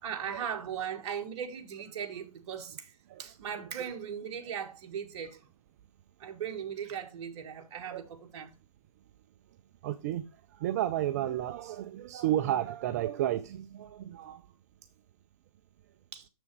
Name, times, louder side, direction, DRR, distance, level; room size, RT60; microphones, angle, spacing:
voice 1, 0.0-2.9 3.2-5.4 6.2-8.5 16.1-16.3, right 8 dB, 50° right, 1.6 m, -38 dB
voice 2, 9.8-10.2 10.5-14.4, right 12 dB, 25° right, 0.4 m, -32 dB
7.1 x 6.1 x 4.6 m
hypercardioid pair, 155°, 19 cm